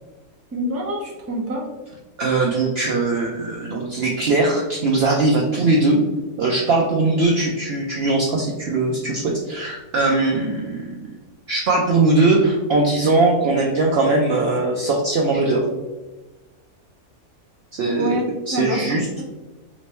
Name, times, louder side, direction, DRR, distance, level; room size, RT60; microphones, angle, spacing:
voice 1, 0.5-1.7 17.9-18.2 18.5-19.3, equal, 20° right, -2 dB, 0.4 m, -26 dB
voice 2, 2.2-6.0 6.4-10.9 11.5-15.6 17.8-18.2 18.5-19.1, right 2 dB, 65° right, -1 dB, 0.6 m, -20 dB
3.2 x 2.9 x 2.9 m, 1.2 s
omnidirectional pair, 1.5 m